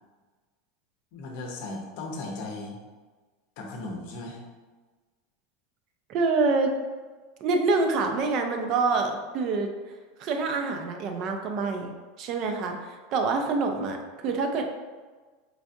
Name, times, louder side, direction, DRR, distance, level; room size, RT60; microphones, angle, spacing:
voice 1, 1.1-2.8 3.6-4.4, left 2 dB, 50° left, 0 dB, 0.7 m, -36 dB
voice 2, 6.1-6.7 7.4-9.7 10.2-11.9 12.2-14.0 14.2-14.7, right 3 dB, 35° right, 4 dB, 0.4 m, -26 dB
4.5 x 2.4 x 2.6 m, 1.3 s
supercardioid pair, 170°, 0 cm